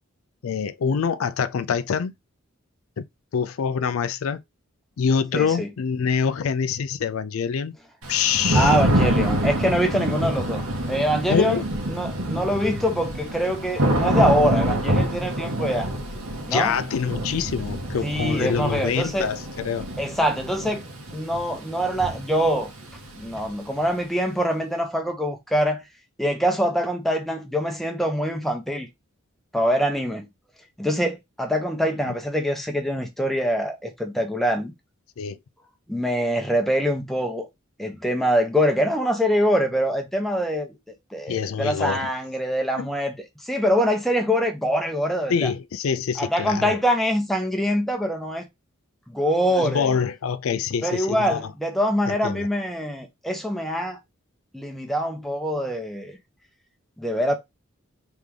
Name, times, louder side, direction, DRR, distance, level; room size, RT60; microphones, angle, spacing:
voice 1, 0.4-2.1 3.0-3.1 3.3-4.4 5.0-7.7 8.1-8.8 11.3-11.6 16.5-19.9 32.1-32.2 35.2-35.4 41.3-42.1 42.8-42.9 45.3-46.8 49.6-51.5 52.1-52.5, left 6 dB, 80° left, 0.4 m, -25 dB
voice 2, 5.3-5.7 8.5-10.6 10.9-11.6 11.9-15.9 16.5-16.8 18.0-19.3 20.0-20.8 21.1-22.7 23.2-25.8 26.2-28.9 29.5-30.2 30.8-34.7 35.9-37.5 37.8-40.7 41.1-43.1 43.4-45.5 46.2-48.4 49.1-49.9 50.8-54.0 54.5-56.2 57.0-57.4, equal, ahead, 0.9 m, -24 dB
Thunder / Rain, 8.0-23.8, right 1 dB, 90° right, 1.5 m, -26 dB
3.7 x 3.5 x 3.3 m
head